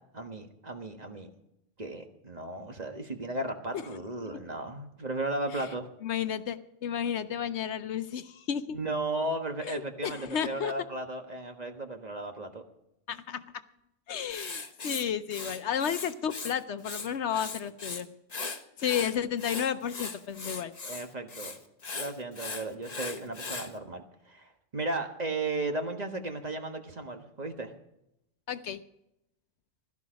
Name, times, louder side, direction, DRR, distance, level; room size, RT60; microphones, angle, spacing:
voice 1, 0.1-1.3 1.8-5.9 8.7-12.6 20.8-21.6 21.9-27.7, right 2 dB, 35° right, 5 dB, 1.5 m, -35 dB
voice 2, 6.0-8.8 9.6-10.7 13.1-13.4 14.1-18.1 18.8-20.7 28.5-28.8, left 8 dB, 70° left, 11 dB, 1.0 m, -32 dB
Writing, 14.3-16.5 16.8-18.0 18.3-23.7, left 4 dB, 35° left, 1.2 m, -38 dB
16.5 x 12.5 x 5.1 m, 0.82 s
omnidirectional pair, 1.3 m